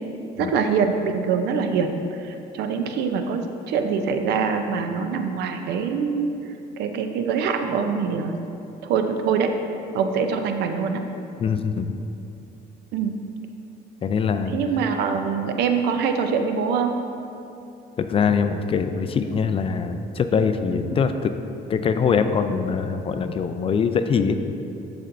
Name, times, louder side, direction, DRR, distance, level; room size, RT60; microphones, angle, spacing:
voice 1, 0.4-6.3 6.8-8.4 8.8-9.5 9.9-11.0 12.9-13.1 14.5-17.0, right 6 dB, 80° right, 6 dB, 0.6 m, -24 dB
voice 2, 11.4-12.0 14.0-14.5 18.0-21.3 21.7-24.4, left 6 dB, 35° left, 9 dB, 0.3 m, -23 dB
12.0 x 4.3 x 2.6 m, 2.7 s
cardioid pair, 110°, 17 cm